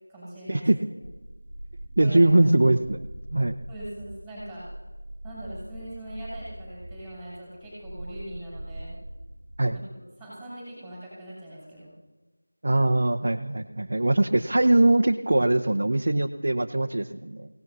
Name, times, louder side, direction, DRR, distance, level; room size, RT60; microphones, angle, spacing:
voice 1, 0.1-0.7 2.0-2.4 3.7-4.6 5.2-8.9 9.7-11.9, right 1 dB, ahead, -11 dB, 6.8 m, -41 dB
sound 1, 1.0-9.7, right 1 dB, 70° right, 1.2 m, -42 dB
voice 2, 2.0-3.0 3.3-3.6 9.6-9.8 12.6-17.5, right 2 dB, 50° right, 2 dB, 0.8 m, -21 dB
29.5 x 17.5 x 2.7 m, 1.1 s
figure-of-eight pair, 170°, 0 cm